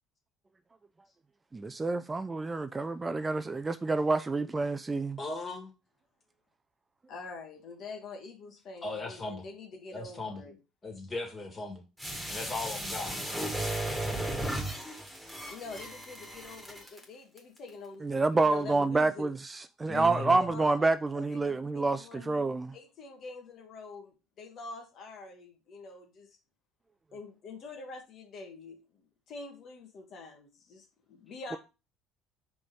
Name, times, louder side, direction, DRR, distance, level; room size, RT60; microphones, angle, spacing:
voice 1, 1.5-5.2 18.0-22.7, right 3 dB, 20° right, 0.4 m, -28 dB
voice 2, 5.2-5.7 8.8-9.4 9.9-10.4 10.8-11.8 12.3-13.3 19.9-20.4, left 3 dB, 30° left, 2.6 m, -37 dB
voice 3, 7.1-10.6 15.5-19.3 19.9-22.4 22.7-26.4 27.1-31.6, left 3 dB, 55° left, 1.4 m, -46 dB
sound 1, 12.0-17.0 17.4-17.5, right 1 dB, ahead, 2.1 m, -35 dB
5.1 x 3.6 x 5.3 m
hypercardioid pair, 70°, 0 cm